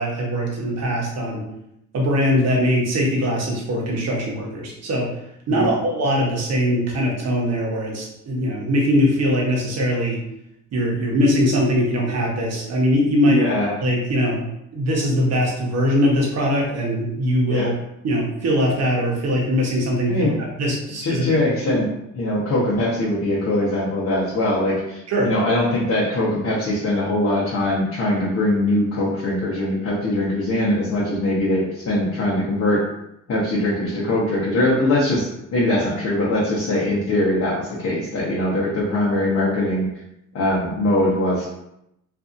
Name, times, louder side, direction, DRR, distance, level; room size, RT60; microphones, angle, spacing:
voice 1, 0.0-1.4 1.9-5.1 5.5-10.2 10.7-13.5 13.8-14.4 14.7-17.7 18.0-20.3 20.6-21.4 25.1-25.3, equal, 60° right, -2 dB, 0.9 m, -21 dB
voice 2, 13.2-13.7 17.5-17.7 20.1-20.4 21.0-21.9 22.1-32.8 33.3-39.9 40.3-41.5, left 1 dB, 60° left, -6 dB, 0.9 m, -21 dB
2.7 x 2.5 x 2.5 m, 0.82 s
cardioid pair, 90°, 30 cm